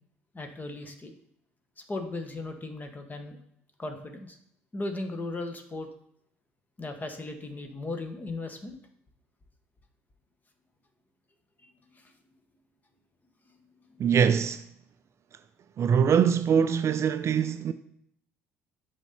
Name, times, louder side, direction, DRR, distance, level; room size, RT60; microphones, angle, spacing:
voice 1, 0.3-1.1 1.8-3.4 3.8-4.4 4.7-5.9 6.8-8.8 11.6-12.1 13.9-14.0, left 2 dB, 25° left, 1.4 m, -37 dB
voice 2, 14.0-14.7 15.8-17.7, right 7 dB, 40° right, 0.4 m, -23 dB
6.8 x 5.1 x 4.3 m
figure-of-eight pair, 55°, 7 cm